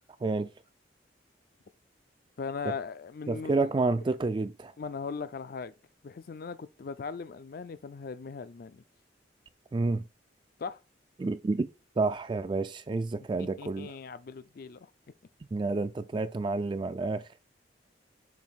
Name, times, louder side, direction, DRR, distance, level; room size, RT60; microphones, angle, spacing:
voice 1, 2.4-3.7 4.8-5.7 6.0-8.8 10.6-10.8 13.4-14.9, left 5 dB, 55° left, 0.4 m, -39 dB
voice 2, 3.3-4.7 9.7-10.0 11.2-11.7 12.0-13.9 15.5-17.2, right 3 dB, 25° right, 0.3 m, -29 dB
7.3 x 2.6 x 5.6 m
head